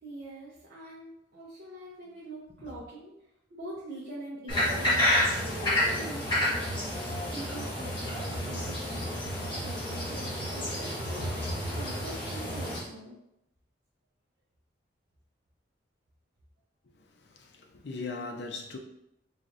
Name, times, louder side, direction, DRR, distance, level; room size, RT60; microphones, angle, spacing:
voice 1, 0.0-3.1 3.5-6.7 7.0-9.2 9.6-13.2, right 1 dB, 55° right, -7 dB, 0.7 m, -44 dB
sound 1, 4.5-12.8, left 1 dB, 25° left, 1.3 m, -30 dB
voice 2, 16.8-18.8, left 3 dB, 60° left, 3 dB, 0.5 m, -40 dB
4.0 x 3.1 x 2.6 m, 0.83 s
head